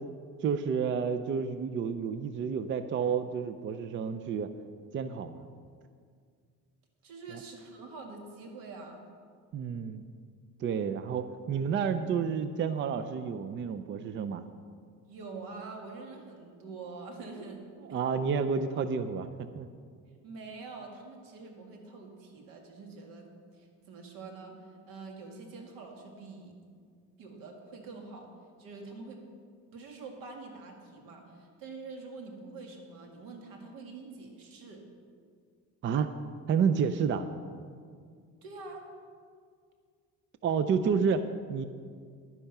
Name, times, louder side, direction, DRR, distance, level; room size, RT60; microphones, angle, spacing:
voice 1, 0.4-4.5 4.9-5.4 7.3-7.4 9.5-10.0 10.6-14.4 17.9-19.7 35.8-36.1 36.5-37.3 40.4-41.7, right 6 dB, 35° right, 10 dB, 0.5 m, -30 dB
voice 2, 7.0-9.0 15.1-17.6 17.9-18.0 20.2-24.6 24.9-26.5 27.2-28.3 28.6-29.2 29.7-34.8 38.4-38.8, right 3 dB, 85° right, 2 dB, 2.1 m, -45 dB
11.0 x 10.0 x 5.9 m, 2.1 s
cardioid pair, 140°, 34 cm